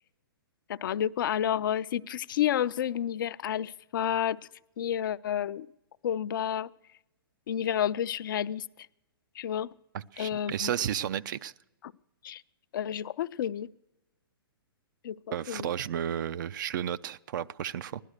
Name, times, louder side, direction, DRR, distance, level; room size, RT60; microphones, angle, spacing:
voice 1, 0.7-4.4 4.8-5.7 6.0-6.7 7.5-8.6 9.4-9.7 10.2-10.7 12.2-12.4 12.7-13.7 15.0-15.7, left 10 dB, 60° left, 0.4 m, -30 dB
voice 2, 9.9-11.5 15.3-18.0, right 10 dB, 55° right, 0.5 m, -33 dB
16.0 x 11.5 x 6.5 m
hypercardioid pair, 125°, 12 cm